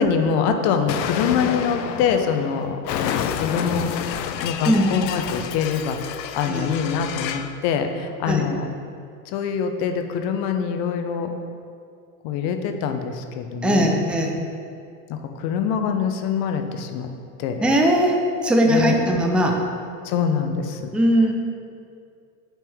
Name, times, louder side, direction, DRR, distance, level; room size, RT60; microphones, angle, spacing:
voice 1, 0.0-8.7 9.3-11.4 12.2-13.9 15.1-17.1 17.4-17.7 18.6-19.0 20.0-20.9, left 6 dB, 50° left, 6 dB, 0.8 m, -24 dB
Explosion, 0.9-7.5, left 9 dB, 90° left, 0.6 m, -29 dB
voice 2, 4.7-5.0 6.5-6.7 8.3-8.5 13.6-14.4 17.6-19.6 20.9-21.3, equal, ahead, 1 dB, 0.5 m, -19 dB
9.2 x 4.4 x 3.5 m, 2.3 s
hypercardioid pair, 100°, 49 cm